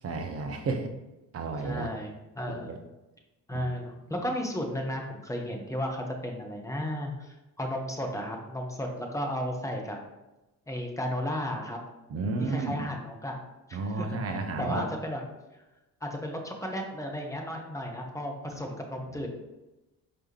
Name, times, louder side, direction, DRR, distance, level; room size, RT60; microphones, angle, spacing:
voice 1, 0.0-0.9 1.3-1.9 2.7-2.8 3.5-3.7 12.1-12.9 13.7-14.9 18.5-18.6 19.1-19.3, right 3 dB, 30° right, 5 dB, 0.6 m, -32 dB
voice 2, 1.6-2.7 3.5-10.0 10.7-11.8 12.4-13.4 13.7-15.2 15.5-15.6 16.0-19.3, equal, 5° left, 1 dB, 0.7 m, -34 dB
4.6 x 2.9 x 3.2 m, 1.0 s
figure-of-eight pair, 45°, 47 cm